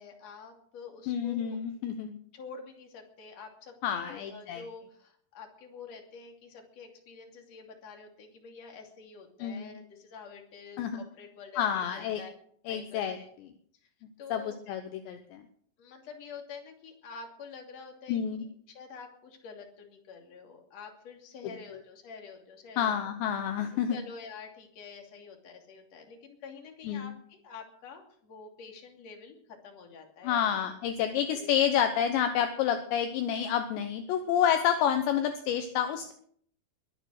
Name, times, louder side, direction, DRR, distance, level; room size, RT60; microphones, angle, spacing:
voice 1, 0.0-1.6 2.3-12.3 12.7-13.4 13.8-13.9 14.2-14.6 15.8-22.9 23.9-30.5 31.3-31.5, left 5 dB, 40° left, 2 dB, 3.3 m, -47 dB
voice 2, 1.1-2.2 3.8-4.6 9.4-9.8 10.8-11.0 11.6-12.2 12.7-13.2 14.3-15.4 18.1-18.5 22.8-24.0 26.9-27.1 30.2-36.1, left 9 dB, 75° left, 7 dB, 3.0 m, -29 dB
22.0 x 9.2 x 6.4 m, 0.63 s
omnidirectional pair, 5.6 m